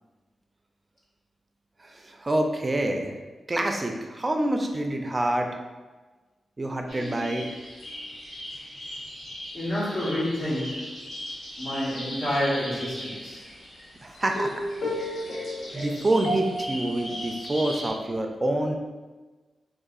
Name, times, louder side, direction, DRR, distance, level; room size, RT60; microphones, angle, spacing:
voice 1, 1.8-3.1 3.5-5.5 6.6-7.5 14.0-14.7 15.7-18.8, right 1 dB, 35° right, 4 dB, 0.4 m, -27 dB
sound 1, 6.9-17.9, equal, 80° left, 1.1 m, -36 dB
voice 2, 9.5-11.1 11.6-13.4, left 1 dB, 65° left, -7 dB, 1.3 m, -29 dB
4.5 x 2.4 x 2.4 m, 1.3 s
cardioid pair, 55°, 0 cm